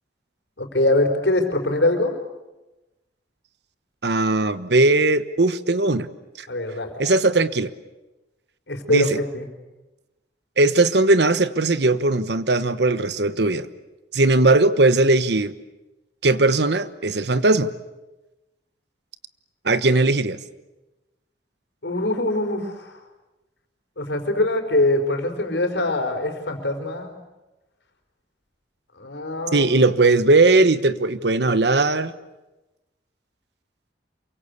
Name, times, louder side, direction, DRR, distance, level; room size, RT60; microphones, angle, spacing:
voice 1, 0.6-2.1 6.5-6.9 8.7-9.1 9.3-9.5 21.8-23.0 24.0-27.2 29.0-29.7, left 2 dB, 85° left, 5 dB, 4.6 m, -23 dB
voice 2, 4.0-6.1 6.4-6.5 7.0-7.7 8.9-9.2 10.6-13.7 14.1-15.5 16.2-17.7 19.6-20.4 29.5-32.1, right 2 dB, 70° right, 13 dB, 1.2 m, -19 dB
28.0 x 24.0 x 8.4 m, 1.0 s
head